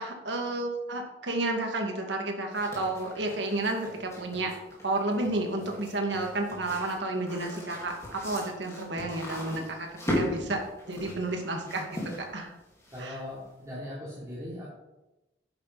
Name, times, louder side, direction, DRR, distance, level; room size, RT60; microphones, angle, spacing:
voice 1, 0.0-4.5 4.8-9.9 10.1-10.6 10.9-12.5 13.0-13.2, right 2 dB, 65° right, 2 dB, 2.2 m, -31 dB
sound 1, 2.5-13.3, equal, 15° left, 4.0 m, -38 dB
voice 2, 12.9-14.7, left 1 dB, 20° right, -9 dB, 3.3 m, -39 dB
11.5 x 9.4 x 4.2 m, 0.99 s
head